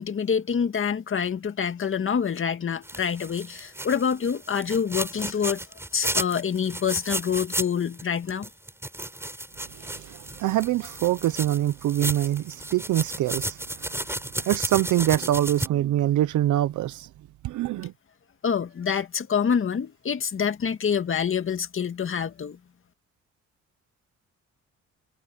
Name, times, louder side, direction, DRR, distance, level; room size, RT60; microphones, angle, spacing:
voice 1, 0.0-5.6 5.9-8.5 18.4-22.6, left 7 dB, 45° left, 2.0 m, -26 dB
sound 1, 2.8-8.0 8.3-15.7, right 1 dB, 10° right, 4.7 m, -33 dB
voice 2, 9.8-13.6 14.4-17.1 17.4-17.9, right 13 dB, 75° right, 0.9 m, -24 dB
cardioid pair, 90°, 30 cm